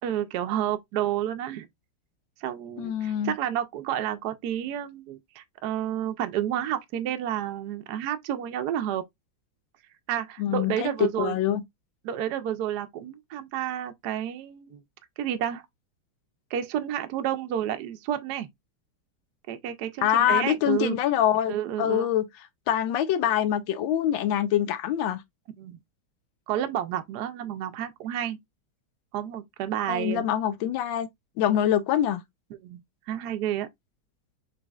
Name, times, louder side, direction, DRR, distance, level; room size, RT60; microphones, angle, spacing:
voice 1, 0.0-1.7 2.4-9.0 10.1-11.4 12.0-14.8 15.2-15.6 16.5-18.5 19.5-21.0 21.5-22.1 25.6-25.8 26.5-28.4 29.1-30.2 32.6-32.8 33.1-33.7, right 11 dB, 70° right, 0.9 m, -30 dB
voice 2, 2.8-3.3 10.4-11.6 20.0-22.3 22.7-25.2 29.9-31.1 31.4-32.2, left 10 dB, 75° left, 1.3 m, -25 dB
5.1 x 3.2 x 2.3 m
omnidirectional pair, 2.2 m